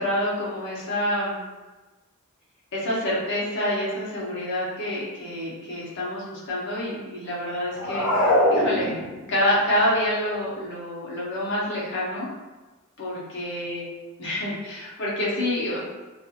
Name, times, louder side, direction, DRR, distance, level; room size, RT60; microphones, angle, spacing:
voice 1, 0.0-1.4 2.7-9.0 9.3-12.3 13.0-13.8 14.2-15.8, left 1 dB, 55° left, -6 dB, 0.9 m, -27 dB
sound 1, 7.7-9.4, left 1 dB, 85° left, 0.5 m, -22 dB
2.7 x 2.5 x 2.3 m, 1.2 s
head